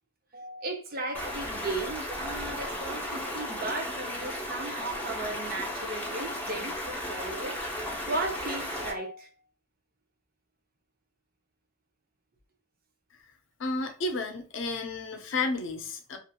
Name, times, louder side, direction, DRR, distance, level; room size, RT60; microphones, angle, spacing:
voice 1, 0.3-7.6 8.1-9.3, right 2 dB, 50° right, 0.6 m, -36 dB
Stream, 1.1-8.9, left 1 dB, 10° left, 0.6 m, -35 dB
voice 2, 13.6-16.2, left 3 dB, 70° left, 0.5 m, -32 dB
2.8 x 2.4 x 2.2 m
head